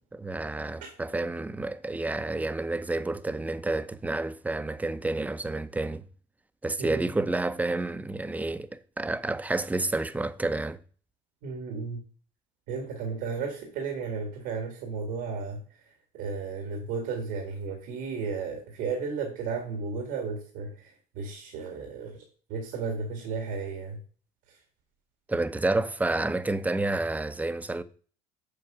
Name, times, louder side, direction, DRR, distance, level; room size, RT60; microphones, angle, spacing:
voice 1, 0.1-6.1 6.6-10.8 25.3-27.8, right 2 dB, 10° right, 0.6 m, -29 dB
voice 2, 6.8-7.1 11.4-12.0 12.7-22.2 22.5-24.0 24.5-24.6, right 5 dB, 85° right, 1.9 m, -34 dB
7.8 x 4.5 x 6.1 m
cardioid pair, 100°, 16 cm